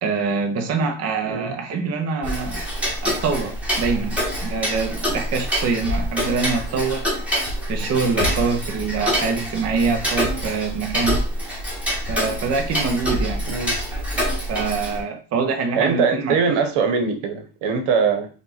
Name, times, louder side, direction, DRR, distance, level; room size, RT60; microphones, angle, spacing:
voice 1, 0.0-2.6 3.0-7.1 7.7-11.2 12.1-13.5 14.5-16.3, right 4 dB, 30° right, 4 dB, 0.7 m, -24 dB
voice 2, 1.2-1.6 13.5-13.8 15.7-18.3, right 5 dB, 85° right, 7 dB, 1.2 m, -22 dB
Tick-tock, 2.2-15.0, equal, 5° right, 1.3 m, -26 dB
5.2 x 2.6 x 4.0 m, 0.36 s
cardioid pair, 165°, 49 cm